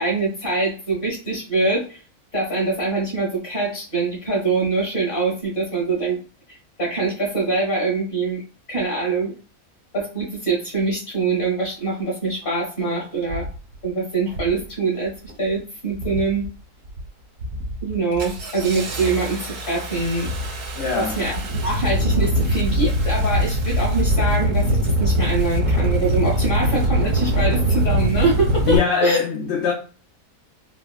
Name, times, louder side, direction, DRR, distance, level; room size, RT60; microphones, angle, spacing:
voice 1, 0.0-2.0 2.3-6.2 6.5-8.4 8.7-9.3 9.9-13.5 13.8-15.1 15.4-16.4 17.8-20.3 20.9-29.2, right 3 dB, 40° left, 1.7 m, -24 dB
Engine starting, 12.4-12.5 13.3-13.6 14.3-14.6 15.0-15.5 15.9-16.5 16.9-17.1 17.4-28.8, equal, 85° right, 1.4 m, -22 dB
voice 2, 20.8-21.2 28.7-29.7, left 5 dB, 60° left, 0.8 m, -21 dB
4.0 x 2.1 x 2.3 m
omnidirectional pair, 1.5 m